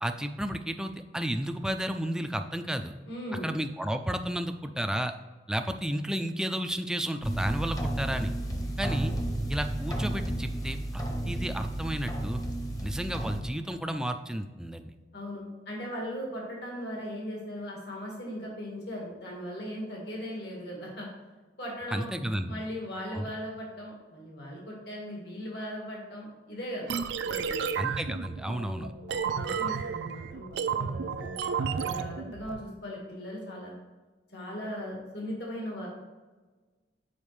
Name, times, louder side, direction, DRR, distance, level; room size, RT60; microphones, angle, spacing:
voice 1, 0.0-2.9 3.4-5.1 5.5-8.3 8.8-9.1 9.5-12.4 12.8-14.9 21.9-22.6 23.1-23.2 27.8-28.9, right 1 dB, 5° right, 7 dB, 0.3 m, -32 dB
voice 2, 3.1-3.5 15.1-21.1 21.6-22.1 22.5-27.7 28.4-30.4 30.8-33.8 34.3-35.9, equal, 65° left, -2 dB, 1.6 m, -38 dB
sound 1, 7.2-13.4, right 1 dB, 20° left, 0.8 m, -32 dB
sound 2, 26.9-32.6, right 6 dB, 75° right, 0.4 m, -32 dB
7.1 x 4.9 x 3.2 m, 1.3 s
head